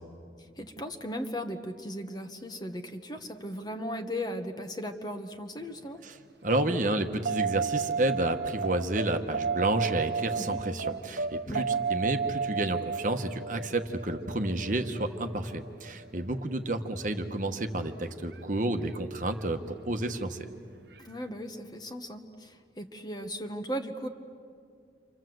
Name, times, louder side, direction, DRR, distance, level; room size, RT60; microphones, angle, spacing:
voice 1, 0.6-6.0 10.4-10.6 11.5-11.8 21.0-24.1, equal, 20° left, 6 dB, 1.3 m, -37 dB
voice 2, 6.4-20.4, right 2 dB, 45° right, 6 dB, 1.3 m, -30 dB
sound 1, 7.2-15.7 18.3-18.4, right 5 dB, 70° right, 0.8 m, -32 dB
29.5 x 26.0 x 7.9 m, 2.3 s
head